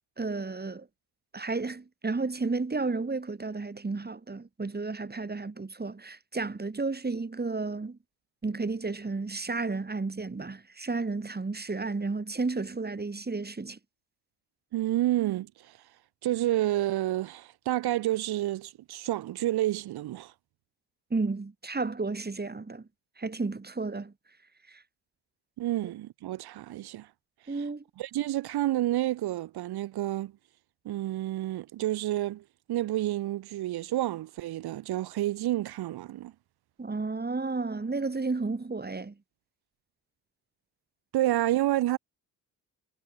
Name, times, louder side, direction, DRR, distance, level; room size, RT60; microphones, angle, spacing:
voice 1, 0.2-0.9 1.3-8.0 8.4-13.8 21.1-22.9 23.2-24.1 24.7-24.8 27.5-27.8 36.8-39.1, right 3 dB, 25° right, 4.4 m, -32 dB
voice 2, 14.7-15.8 16.2-20.3 25.6-27.1 27.5-27.6 28.0-30.3 30.9-36.3 41.1-42.0, right 14 dB, 80° right, 3.7 m, -29 dB
supercardioid pair, 65°, 38 cm